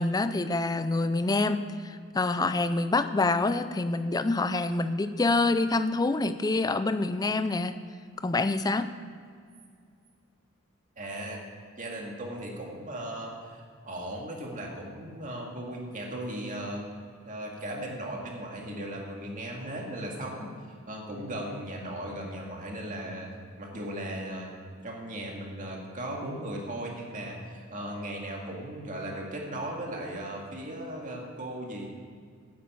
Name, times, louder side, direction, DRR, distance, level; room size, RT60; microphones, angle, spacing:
voice 1, 0.0-7.8 8.2-8.9, left 3 dB, 15° left, 11 dB, 0.4 m, -26 dB
voice 2, 11.0-11.4 11.8-16.8 17.2-20.5 20.9-24.5 24.8-31.9, right 1 dB, 35° right, -1 dB, 2.0 m, -37 dB
9.6 x 8.3 x 8.5 m, 2.2 s
head